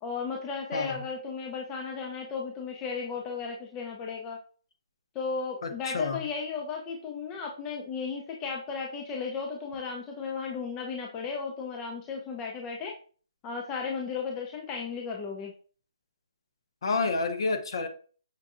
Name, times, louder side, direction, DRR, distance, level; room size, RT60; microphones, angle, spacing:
voice 1, 0.0-4.4 5.1-12.9 13.4-15.5, left 5 dB, 10° left, 0.3 m, -35 dB
voice 2, 5.6-6.2 16.8-17.9, left 3 dB, 50° left, 0.6 m, -29 dB
5.8 x 2.6 x 2.4 m
hypercardioid pair, 165°, 3 cm